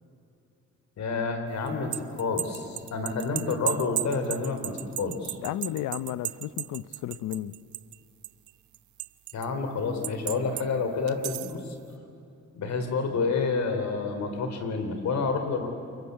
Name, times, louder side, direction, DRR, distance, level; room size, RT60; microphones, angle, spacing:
voice 1, 1.0-5.4 9.3-11.7 12.5-15.7, left 4 dB, 65° left, 4.1 m, -29 dB
sound 1, 1.7-8.0 8.2-9.5 10.0-10.7 11.1-11.6, right 16 dB, 75° right, 0.6 m, -34 dB
voice 2, 5.4-7.5, left 13 dB, 85° left, 0.8 m, -33 dB
29.0 x 22.0 x 8.2 m
cardioid pair, 90°, 30 cm